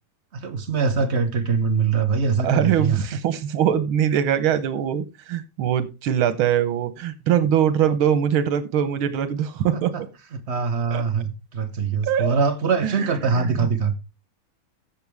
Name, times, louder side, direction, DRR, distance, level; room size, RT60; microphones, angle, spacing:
voice 1, 0.3-3.2 9.7-10.0 10.3-13.9, right 5 dB, 50° right, 0.9 m, -23 dB
voice 2, 2.4-9.9 10.9-11.0 12.0-12.4 12.8-13.7, right 9 dB, 85° right, 1.8 m, -22 dB
14.5 x 6.4 x 3.4 m
omnidirectional pair, 2.2 m